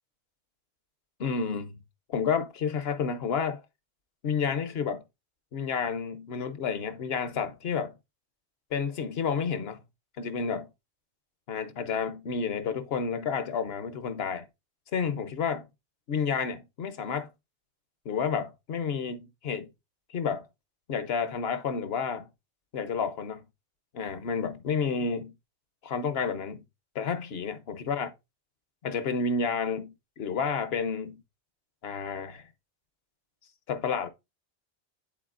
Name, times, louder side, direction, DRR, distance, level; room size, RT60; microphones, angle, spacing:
voice 1, 1.2-1.8 2.1-3.6 4.2-5.0 5.5-7.9 8.7-9.8 10.2-10.7 11.5-14.5 14.9-15.7 16.1-17.3 18.0-19.7 20.1-20.5 20.9-22.3 22.7-23.4 23.9-25.3 25.8-26.6 26.9-28.1 28.8-31.2 31.8-32.5 33.7-34.1, left 6 dB, 65° left, 1.0 m, -30 dB
11.0 x 4.0 x 2.5 m
omnidirectional pair, 1.2 m